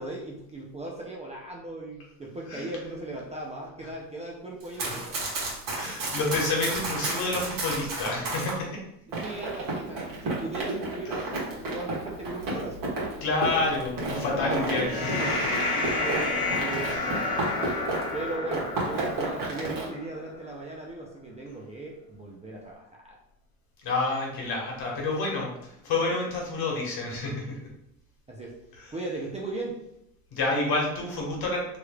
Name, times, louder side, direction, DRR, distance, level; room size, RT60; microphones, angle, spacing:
voice 1, 0.0-5.2 9.1-12.8 15.7-17.3 18.1-23.2 28.3-28.5 28.9-29.8, right 2 dB, 15° right, -2 dB, 0.5 m, -38 dB
Run, 4.6-8.6 9.1-18.2 18.5-19.9, right 2 dB, 45° right, 1.4 m, -32 dB
voice 2, 5.7-8.8 13.2-15.2 23.8-27.6 28.8-28.9 30.3-31.7, left 2 dB, 50° left, -1 dB, 1.3 m, -29 dB
sound 1, 13.7-20.2, left 2 dB, 65° left, 1.0 m, -31 dB
3.3 x 3.0 x 2.3 m, 0.80 s
supercardioid pair, 90°, 47 cm